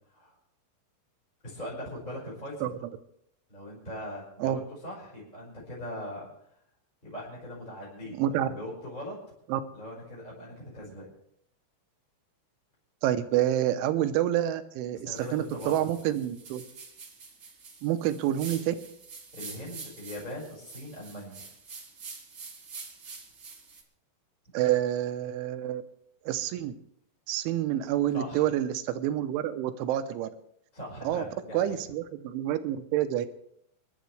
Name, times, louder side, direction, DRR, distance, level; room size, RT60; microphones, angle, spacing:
voice 1, 1.4-2.7 3.5-6.3 7.0-9.2 9.7-11.1 15.0-15.8 19.3-21.4 28.1-28.4 30.7-31.7, equal, 10° left, -5 dB, 5.0 m, -40 dB
voice 2, 8.2-8.5 9.5-9.6 13.0-16.6 17.8-18.8 24.5-25.8 26.3-26.7 27.3-30.3 31.0-31.3 31.5-33.3, right 12 dB, 80° right, 10 dB, 3.3 m, -28 dB
sound 1, 15.1-23.8, right 4 dB, 60° right, 1.1 m, -46 dB
26.0 x 11.5 x 3.3 m, 0.71 s
omnidirectional pair, 5.5 m